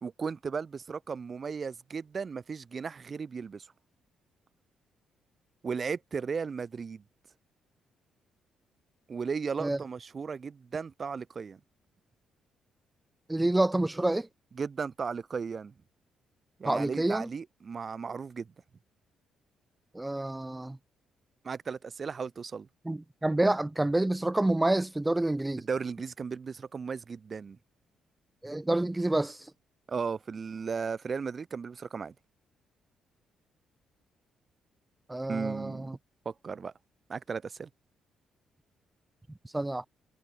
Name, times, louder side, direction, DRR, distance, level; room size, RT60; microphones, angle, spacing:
voice 1, 0.0-3.7 5.6-7.0 9.1-11.6 14.6-15.7 16.6-18.5 21.4-22.7 25.6-27.6 29.9-32.1 35.3-35.9 36.2-36.7 37.1-37.7, right 5 dB, 40° right, 2.8 m, -35 dB
voice 2, 13.3-14.3 16.6-17.3 19.9-20.8 22.8-25.6 28.4-29.4 35.1-36.0 39.5-39.8, right 2 dB, 10° right, 1.2 m, -28 dB
cardioid pair, 90°, 0 cm